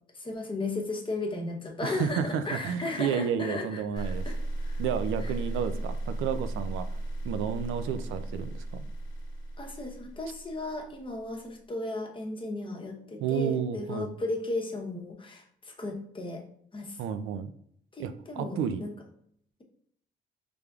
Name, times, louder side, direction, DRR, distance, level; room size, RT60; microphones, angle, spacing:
voice 1, 0.1-4.8 5.2-5.3 9.6-16.4 16.7-17.0 17.9-18.9, left 2 dB, 25° left, 2 dB, 0.9 m, -35 dB
voice 2, 1.8-4.2 4.8-6.9 7.2-8.8 13.2-14.1 17.0-17.5 18.0-18.8, right 7 dB, 85° right, 10 dB, 0.4 m, -31 dB
sound 1, 4.0-11.1, right 1 dB, 90° left, 0.9 m, -35 dB
5.0 x 3.4 x 2.3 m, 0.65 s
cardioid pair, 90°, 20 cm